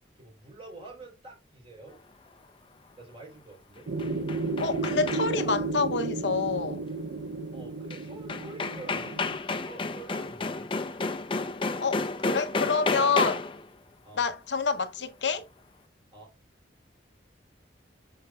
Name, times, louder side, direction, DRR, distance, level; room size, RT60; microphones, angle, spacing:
voice 1, 0.2-2.0 3.0-3.9 7.5-9.2 9.6-10.7 14.0-14.3 16.1-16.3, right 2 dB, 30° right, 3.4 m, -47 dB
sound 1, 3.8-5.5 7.9-8.0 8.3-13.6, left 3 dB, 30° left, 0.6 m, -31 dB
sound 2, 3.9-9.3, right 3 dB, 75° right, 0.7 m, -33 dB
voice 2, 4.6-6.8 11.8-13.4 14.2-15.5, left 4 dB, 85° left, 0.8 m, -27 dB
7.6 x 5.9 x 2.3 m
head